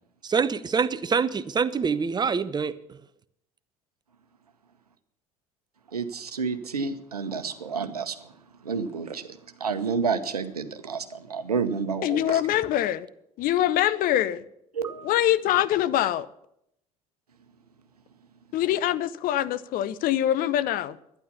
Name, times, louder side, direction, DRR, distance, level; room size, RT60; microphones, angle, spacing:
voice 1, 0.2-3.0, right 5 dB, 20° right, 0.8 m, -25 dB
voice 2, 5.9-8.2 8.6-12.4 14.7-15.1, right 5 dB, 85° right, 1.0 m, -30 dB
voice 3, 12.0-13.1 13.4-14.4 15.0-16.3 18.5-21.0, left 12 dB, 50° left, 0.7 m, -24 dB
12.0 x 10.5 x 6.9 m
figure-of-eight pair, 65°, 19 cm